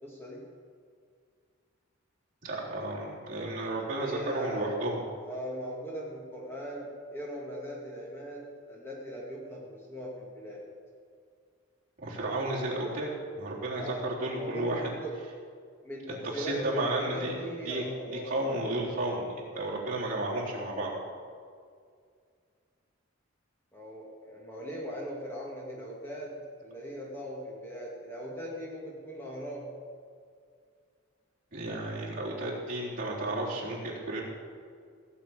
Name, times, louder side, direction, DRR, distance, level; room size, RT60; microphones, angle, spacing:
voice 1, 0.0-0.4 4.0-4.7 5.2-10.6 13.8-14.1 14.3-15.2 15.8-18.3 23.7-29.8, equal, 10° left, -4 dB, 1.9 m, -39 dB
voice 2, 2.4-5.1 12.0-14.9 16.3-17.4 17.6-20.9 31.5-34.2, right 1 dB, 40° right, -6 dB, 3.6 m, -33 dB
17.0 x 6.0 x 8.8 m, 2.1 s
head